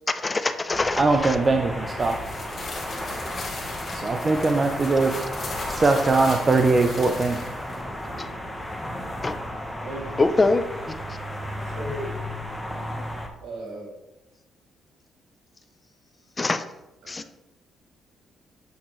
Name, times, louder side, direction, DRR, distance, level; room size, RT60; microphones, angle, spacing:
voice 1, 0.1-1.3 9.2-9.3 10.2-10.6 16.4-16.6 17.1-17.3, left 3 dB, 25° left, 10 dB, 0.4 m, -23 dB
sound 1, 0.7-13.3, left 1 dB, 5° left, 1.0 m, -34 dB
voice 2, 1.0-2.2 3.9-5.2 5.7-7.4, right 3 dB, 30° right, 4 dB, 0.5 m, -21 dB
sound 2, 2.0-7.8, left 3 dB, 45° left, 2.1 m, -38 dB
voice 3, 9.8-10.2 11.6-12.1 13.4-14.0 17.0-17.2, right 1 dB, 70° right, -1 dB, 2.3 m, -36 dB
8.1 x 4.3 x 3.1 m, 0.97 s
cardioid pair, 95°, 0 cm